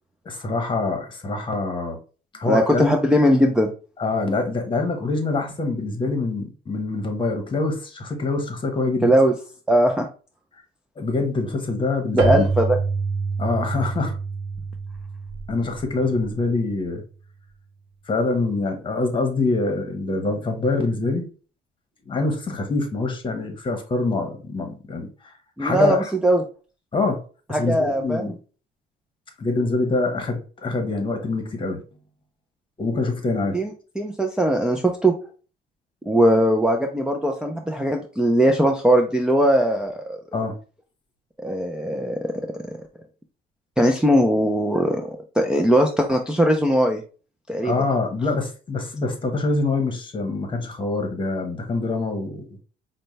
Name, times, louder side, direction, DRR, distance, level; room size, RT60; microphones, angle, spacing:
voice 1, 0.2-2.0 2.4-2.9 4.0-9.1 11.0-12.5 13.4-14.2 15.5-17.0 18.1-21.3 22.1-25.3 25.6-26.0 26.9-27.2 27.5-28.3 29.4-31.8 32.8-33.6 40.3-40.5 47.6-52.4, left 3 dB, 30° left, 1.1 m, -25 dB
voice 2, 2.5-3.7 9.0-9.3 9.7-10.1 12.1-12.8 25.6-26.4 27.5-28.3 33.5-33.7 34.0-35.1 36.1-40.2 41.4-42.3 43.8-47.0 47.5-47.7, right 1 dB, 5° right, 0.4 m, -20 dB
Keyboard (musical), 12.2-16.7, right 4 dB, 75° right, 0.7 m, -27 dB
5.1 x 2.2 x 3.2 m
cardioid pair, 110°, 17 cm